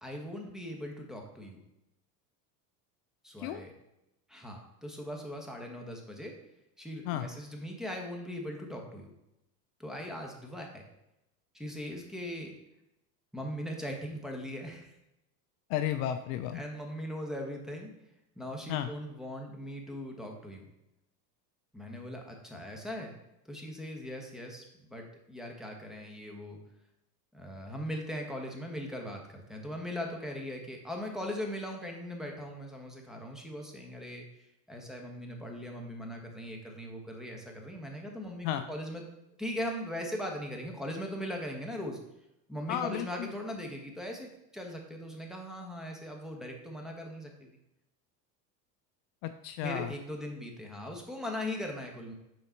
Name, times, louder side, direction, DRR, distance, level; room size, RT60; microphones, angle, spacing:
voice 1, 0.0-1.6 3.2-3.7 4.3-6.3 6.8-9.1 9.8-10.8 11.5-12.5 13.3-14.9 16.5-17.9 18.4-20.6 21.7-23.2 23.4-26.6 27.3-34.2 34.7-39.0 39.4-42.0 42.5-47.5 49.6-52.1, equal, ahead, 0 dB, 1.2 m, -39 dB
voice 2, 15.7-16.6 18.7-18.9 38.4-38.7 42.7-43.3 49.2-49.9, left 11 dB, 55° left, 9 dB, 0.5 m, -33 dB
5.6 x 4.0 x 4.5 m, 0.87 s
hypercardioid pair, 90°, 50 cm